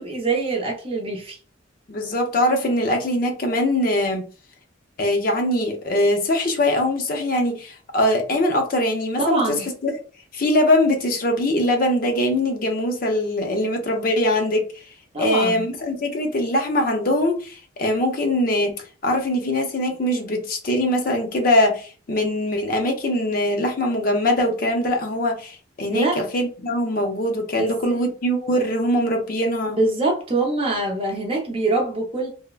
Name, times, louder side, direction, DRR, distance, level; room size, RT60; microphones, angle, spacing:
voice 1, 0.0-1.4 9.2-9.7 15.1-15.6 25.9-26.2 27.6-28.0 29.7-32.3, right 3 dB, 30° right, 0.6 m, -24 dB
voice 2, 1.9-4.2 5.0-10.0 10.3-14.7 15.2-18.7 19.0-29.8, left 1 dB, 45° left, 0.5 m, -22 dB
3.2 x 2.1 x 2.3 m
head